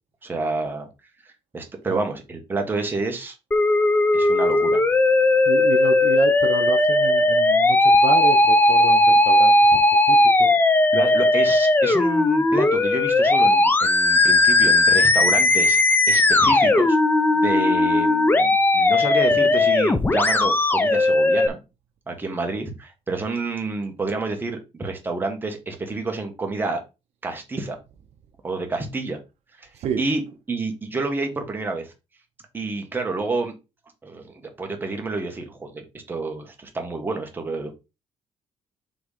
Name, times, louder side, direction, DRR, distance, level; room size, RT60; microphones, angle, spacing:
voice 1, 0.2-0.9 1.2-3.3 4.1-4.8 10.9-15.8 16.1-17.0 17.3-21.6 22.1-26.8 27.2-27.8 28.4-29.2 29.6-29.7 30.0-30.2 30.5-31.9 32.5-33.5 34.0-35.8 36.1-37.8, right 3 dB, 15° right, 1.5 m, -29 dB
Musical instrument, 3.5-21.5, left 2 dB, 15° left, 0.7 m, -17 dB
voice 2, 5.5-9.8 10.1-10.5 29.8-30.0, right 8 dB, 65° right, 0.7 m, -29 dB
6.2 x 3.5 x 5.0 m
cardioid pair, 145°, 12 cm